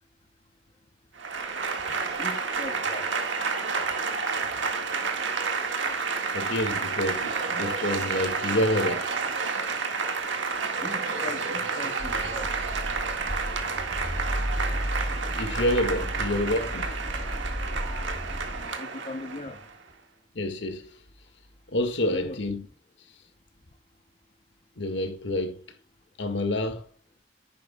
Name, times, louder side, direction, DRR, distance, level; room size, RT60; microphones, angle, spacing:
Applause / Crowd, 1.2-19.7, right 4 dB, 65° right, 1.8 m, -30 dB
voice 1, 2.2-3.1 10.8-12.6 18.7-19.7 22.0-22.4, left 2 dB, 35° left, 0.8 m, -39 dB
voice 2, 6.3-9.1 15.1-16.9 20.4-20.9 21.7-22.7 24.8-25.6 26.2-26.9, left 1 dB, 65° left, 1.9 m, -28 dB
sound 1, 12.0-18.7, equal, ahead, 0.9 m, -33 dB
11.0 x 10.0 x 2.3 m
head